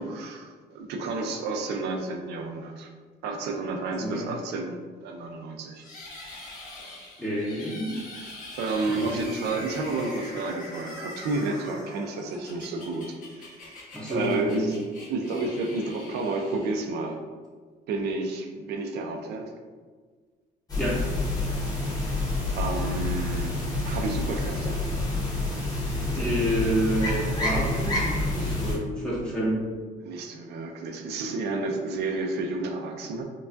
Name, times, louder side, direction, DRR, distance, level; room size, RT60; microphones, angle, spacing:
voice 1, 0.0-2.9 3.2-5.9 6.3-6.5 6.8-7.0 8.2-8.3 8.6-13.8 14.1-17.2 17.9-19.5 22.5-23.6 23.8-24.8 30.0-33.2, right 3 dB, 75° right, 3 dB, 0.5 m, -31 dB
sound 1, 5.8-17.1, left 2 dB, 55° left, 1.2 m, -44 dB
voice 2, 7.2-8.0 8.9-9.1 9.5-9.6 13.9-14.7 20.8-21.0 26.1-29.6, equal, 5° left, -7 dB, 0.7 m, -29 dB
sound 2, 20.7-28.8, left 2 dB, 20° left, 1.0 m, -28 dB
4.6 x 2.3 x 2.6 m, 1.5 s
cardioid pair, 110°, 17 cm